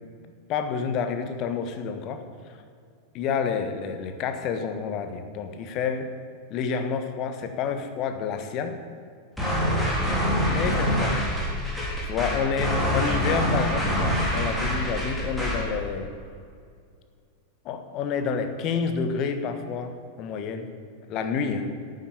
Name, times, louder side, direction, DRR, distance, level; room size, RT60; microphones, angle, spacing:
voice 1, 0.5-2.2 3.1-6.1 6.5-8.8 10.5-11.2 12.0-16.1 17.6-20.7 21.1-21.7, left 6 dB, 40° left, 7 dB, 1.4 m, -29 dB
sound 1, 9.4-15.7, equal, ahead, 3.9 m, -25 dB
12.0 x 8.0 x 8.6 m, 2.3 s
figure-of-eight pair, 90°, 0 cm